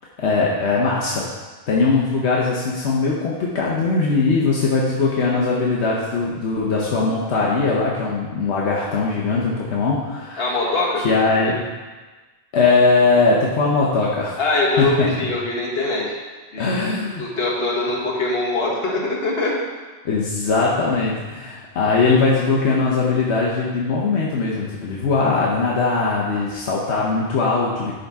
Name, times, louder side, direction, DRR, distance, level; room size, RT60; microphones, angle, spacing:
voice 1, 0.2-1.2 1.7-10.6 11.0-11.6 12.5-14.3 14.8-15.3 16.6-17.2 20.0-27.9, left 4 dB, 80° left, -4 dB, 1.1 m, -20 dB
voice 2, 10.4-11.1 11.4-11.5 14.4-16.1 16.5-16.6 17.0-19.6, left 2 dB, 65° left, -3 dB, 1.5 m, -22 dB
11.5 x 3.9 x 3.5 m, 1.3 s
omnidirectional pair, 1.1 m